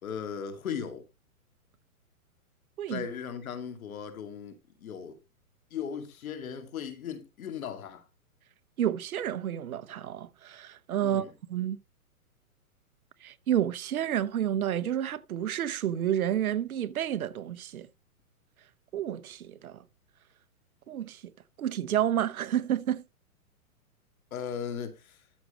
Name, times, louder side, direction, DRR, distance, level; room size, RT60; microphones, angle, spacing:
voice 1, 0.0-1.0 2.9-5.2 5.7-8.0 11.0-11.3 24.3-25.2, left 7 dB, 70° left, 2.4 m, -37 dB
voice 2, 8.8-11.8 13.2-17.9 18.9-19.8 20.9-21.2 21.6-23.0, right 11 dB, 75° right, 1.0 m, -30 dB
13.0 x 6.2 x 3.1 m
hypercardioid pair, 145°, 44 cm